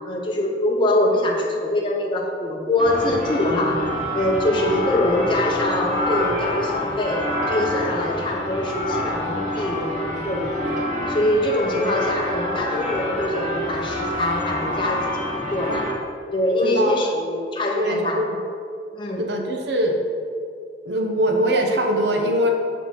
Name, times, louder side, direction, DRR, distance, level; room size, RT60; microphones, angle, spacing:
voice 1, 0.1-10.7 11.1-15.9 16.3-18.3 18.9-19.2, left 1 dB, 30° left, -1 dB, 0.8 m, -23 dB
Bells-Church in St Augustine, 2.8-15.9, left 1 dB, 45° right, 1.9 m, -27 dB
voice 2, 16.6-16.9 17.8-18.3 19.2-20.0 20.8-22.5, equal, 75° right, 2 dB, 1.0 m, -22 dB
8.1 x 4.1 x 5.9 m, 2.5 s
head